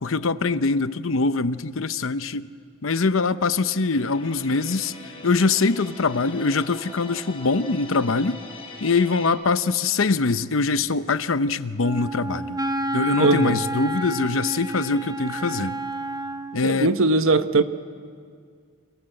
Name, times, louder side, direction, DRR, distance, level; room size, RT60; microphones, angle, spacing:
voice 1, 0.0-2.5 2.8-4.9 5.2-8.4 8.8-12.6 12.9-15.8 16.5-17.0, left 4 dB, 75° left, 13 dB, 0.8 m, -23 dB
sound 1, 3.9-9.3, left 3 dB, 30° left, 5.0 m, -41 dB
Wind instrument woodwind instrument, 11.8-16.6, right 1 dB, 20° right, 1.2 m, -30 dB
voice 2, 13.2-13.6 16.6-17.6, right 3 dB, 80° right, 10 dB, 1.1 m, -19 dB
29.0 x 26.5 x 7.8 m, 2.1 s
head